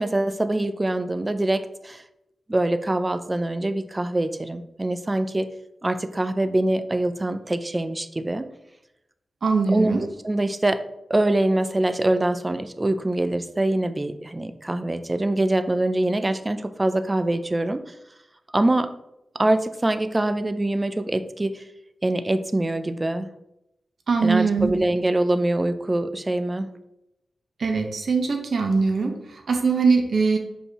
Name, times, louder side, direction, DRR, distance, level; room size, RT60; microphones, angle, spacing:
voice 1, 0.0-2.0 2.5-5.5 5.8-8.5 9.7-17.8 18.5-18.9 19.4-21.6 22.0-23.3 24.2-26.7, right 1 dB, 15° right, 10 dB, 0.3 m, -24 dB
voice 2, 9.4-10.0 24.1-24.7 27.6-30.4, right 4 dB, 60° right, 3 dB, 1.0 m, -22 dB
6.3 x 5.4 x 2.9 m, 0.86 s
wide cardioid pair, 165°, 0 cm